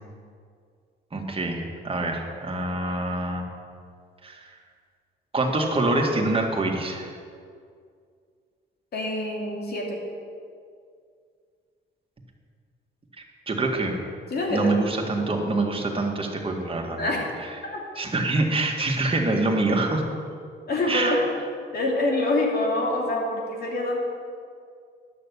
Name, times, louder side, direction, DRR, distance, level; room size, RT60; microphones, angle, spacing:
voice 1, 1.1-3.4 4.2-4.5 5.3-7.1 13.5-14.0 14.5-17.0 18.0-20.0 20.9-21.2, right 2 dB, 25° right, 1 dB, 2.0 m, -25 dB
voice 2, 8.9-10.0 14.3-14.7 17.0-17.2 17.7-17.8 20.7-21.2 21.7-24.0, left 2 dB, 55° left, -1 dB, 2.9 m, -25 dB
11.0 x 6.7 x 8.4 m, 2.2 s
cardioid pair, 90°, 20 cm